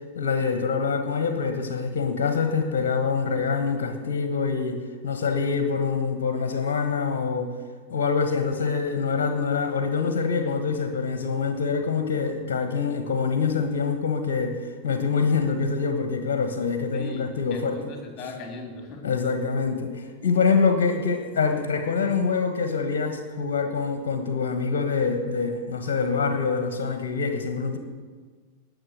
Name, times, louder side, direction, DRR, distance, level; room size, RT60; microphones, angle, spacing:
voice 1, 0.1-7.5 7.9-17.9 19.0-27.8, left 5 dB, 55° left, 7 dB, 1.3 m, -25 dB
voice 2, 16.9-19.0, left 3 dB, 30° left, 3 dB, 3.2 m, -38 dB
19.0 x 6.8 x 6.6 m, 1.5 s
figure-of-eight pair, 90°, 0 cm